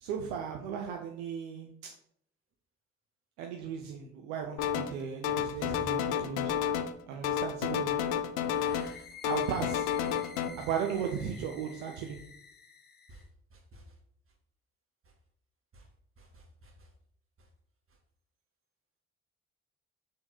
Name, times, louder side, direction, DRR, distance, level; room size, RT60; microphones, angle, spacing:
voice 1, 0.0-1.9 3.4-6.5 7.1-8.0 9.2-9.8 10.6-12.2, right 7 dB, 70° right, 2 dB, 0.7 m, -36 dB
sound 1, 4.6-5.0 5.2-7.0 7.2-9.0 9.2-10.5, left 9 dB, 70° left, 0.6 m, -31 dB
voice 2, 5.5-5.9 8.8-8.9 10.6-10.7 13.1-13.2 13.5-13.8 15.7-15.9 16.2-16.9, equal, 40° right, 1 dB, 2.0 m, -50 dB
sound 2, 8.4-13.3, left 6 dB, 30° left, 0.8 m, -51 dB
6.3 x 3.8 x 4.3 m, 0.66 s
figure-of-eight pair, 45°, 35 cm